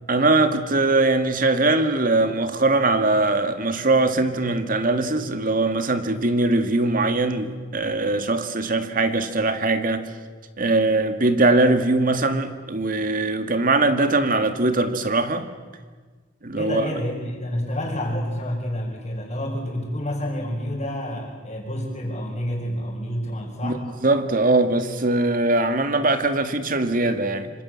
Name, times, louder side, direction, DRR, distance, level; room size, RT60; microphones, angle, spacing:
voice 1, 0.1-10.0 10.6-15.4 16.4-16.9 23.6-23.8 24.0-27.5, right 2 dB, 50° right, 8 dB, 2.1 m, -21 dB
voice 2, 16.5-23.8, equal, 35° left, -5 dB, 5.0 m, -29 dB
27.0 x 25.5 x 7.6 m, 1.4 s
head